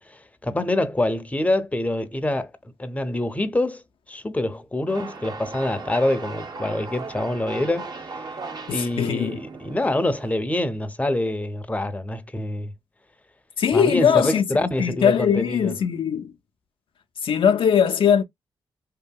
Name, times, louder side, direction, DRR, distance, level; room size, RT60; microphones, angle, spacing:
voice 1, 0.1-2.5 2.8-3.8 4.1-7.9 8.7-12.7 13.7-15.7, left 1 dB, 15° left, 0.6 m, -25 dB
sound 1, 4.9-10.3, right 3 dB, 45° right, 0.7 m, -37 dB
voice 2, 8.7-9.4 13.6-14.4 14.8-16.3 17.2-18.2, left 8 dB, 65° left, 0.4 m, -20 dB
2.7 x 2.6 x 2.2 m
cardioid pair, 55°, 10 cm